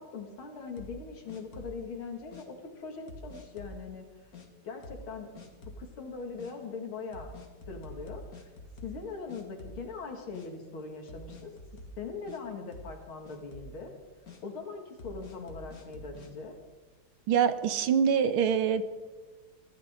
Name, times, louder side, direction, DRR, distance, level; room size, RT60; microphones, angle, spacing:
voice 1, 0.0-4.1 4.6-7.3 7.7-8.5 8.8-11.5 12.0-13.9 14.4-16.5, left 4 dB, 80° left, 3 dB, 2.9 m, -41 dB
sound 1, 0.8-1.9 2.3-2.5 3.1-3.8 4.3-4.5 4.8-5.1 5.4-5.9 6.4-6.5 7.1-9.0 9.3-10.0 10.3-10.5 11.1-12.4 12.7-13.0 13.3-13.8 14.3-14.4 15.0-16.3, left 1 dB, 45° left, 2.0 m, -47 dB
voice 2, 17.3-18.8, right 7 dB, 80° right, 11 dB, 1.8 m, -25 dB
24.0 x 14.5 x 3.7 m, 1.3 s
omnidirectional pair, 2.3 m